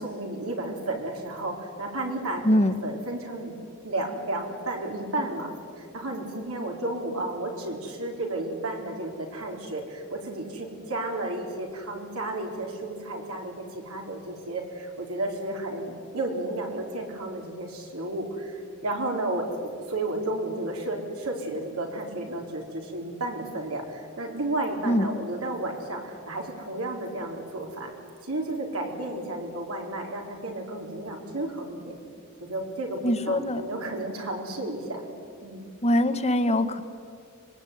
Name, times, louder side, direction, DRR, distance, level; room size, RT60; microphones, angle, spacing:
voice 1, 0.0-2.4 2.8-3.5 3.8-5.5 5.8-18.6 18.8-27.9 28.2-32.0 32.5-35.1 35.4-35.7, right 2 dB, 75° right, 1 dB, 4.6 m, -32 dB
voice 2, 2.4-2.8 24.8-25.1 33.0-33.6 35.8-36.8, left 1 dB, 30° left, 10 dB, 1.5 m, -23 dB
25.0 x 21.5 x 9.6 m, 2.3 s
head